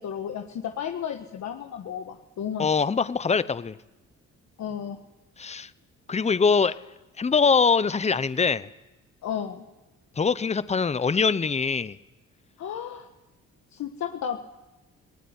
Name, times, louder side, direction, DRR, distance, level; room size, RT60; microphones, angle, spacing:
voice 1, 0.0-2.7 4.6-5.0 9.2-9.7 12.6-13.1 13.7-14.4, left 8 dB, 65° left, 4 dB, 1.6 m, -33 dB
voice 2, 2.6-3.8 5.4-5.7 6.1-6.8 7.2-8.7 10.2-12.0, left 5 dB, 20° left, 15 dB, 0.9 m, -23 dB
20.5 x 18.5 x 9.8 m, 1.0 s
cardioid pair, 90°, 30 cm